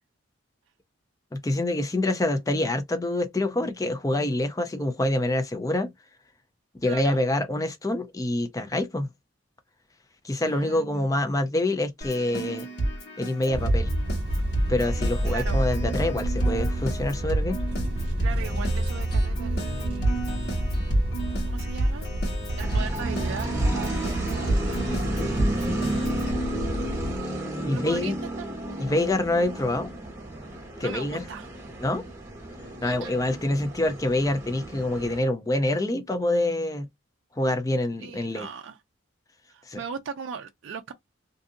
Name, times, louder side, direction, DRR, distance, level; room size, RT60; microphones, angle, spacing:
voice 1, 1.3-5.9 6.8-9.1 10.2-12.7 13.2-13.9 14.7-17.6 25.2-26.1 27.2-27.3 27.6-28.2 28.8-29.9 30.8-31.3 31.8-32.0 32.8-36.9 37.4-38.5 39.7-39.8, left 1 dB, 15° left, 0.4 m, -26 dB
voice 2, 6.9-7.2 10.4-11.1 15.3-15.6 18.2-20.2 21.4-22.1 22.6-24.9 27.7-29.1 30.8-31.5 32.8-33.2 38.0-38.8 39.5-40.9, right 6 dB, 65° right, 0.4 m, -39 dB
Keyboard (musical), 12.0-26.3, right 1 dB, 50° left, 1.3 m, -30 dB
sound 1, 13.5-27.2, right 1 dB, 35° right, 1.2 m, -29 dB
sound 2, 22.6-35.2, right 1 dB, 15° right, 1.0 m, -33 dB
2.6 x 2.5 x 2.5 m
head